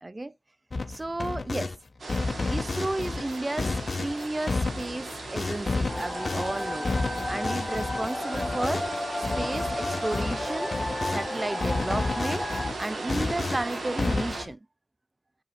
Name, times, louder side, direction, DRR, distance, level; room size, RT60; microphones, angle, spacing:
voice 1, 0.0-0.3 0.9-1.7 2.5-3.7 4.0-6.9 7.3-8.8 9.4-10.7 11.1-12.5 12.8-14.6, right 2 dB, 20° right, 0.5 m, -33 dB
sound 1, 0.7-1.8 2.1-11.3 11.6-14.5, left 3 dB, 40° left, 0.7 m, -31 dB
sound 2, 2.0-14.4, right 3 dB, 50° right, 3.1 m, -37 dB
sound 3, 5.9-12.7, left 1 dB, 15° left, 1.2 m, -33 dB
8.5 x 5.0 x 2.2 m
wide cardioid pair, 95°, 0 cm